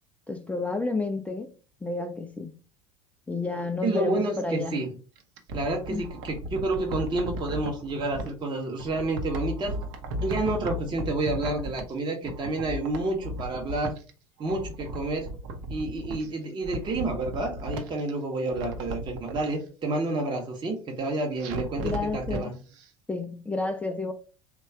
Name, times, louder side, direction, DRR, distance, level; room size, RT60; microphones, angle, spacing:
voice 1, 0.3-1.5 1.8-2.5 3.3-4.9 5.9-6.0 21.8-22.5 23.1-24.1, left 3 dB, 10° left, 0.4 m, -30 dB
voice 2, 3.8-4.9 5.5-9.8 10.2-13.9 14.4-15.3 15.7-22.5, right 2 dB, 25° right, 0.8 m, -29 dB
sound 1, 5.2-8.3 8.8-12.0 12.2-14.1 14.4-16.3 16.6-18.1 18.5-19.5 21.4-22.4 22.8-22.9, right 1 dB, 55° right, 0.7 m, -35 dB
3.1 x 2.3 x 4.2 m
figure-of-eight pair, 70°, 17 cm